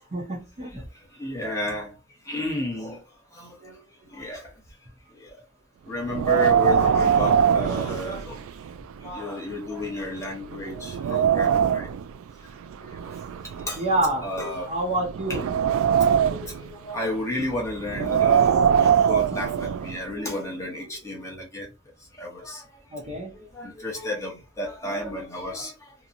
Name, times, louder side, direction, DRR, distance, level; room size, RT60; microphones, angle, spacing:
voice 1, 0.1-0.8 13.8-14.3 14.7-15.5 22.9-23.3, right 1 dB, 35° right, 0.8 m, -27 dB
voice 2, 0.6-2.0 2.2-3.0 3.3-4.5 5.1-5.4 5.9-8.4 9.0-11.9 12.8-13.2 13.6-13.9 14.2-14.8 15.3-15.4 16.1-21.7 22.2-22.8 23.3-25.9, left 1 dB, 15° left, 0.9 m, -33 dB
Wind, 6.1-8.7 9.1-9.2 9.8-9.9 10.4-12.0 12.9-14.4 15.0-16.6 17.9-20.0, right 8 dB, 70° right, 0.3 m, -22 dB
2.8 x 2.2 x 2.5 m
head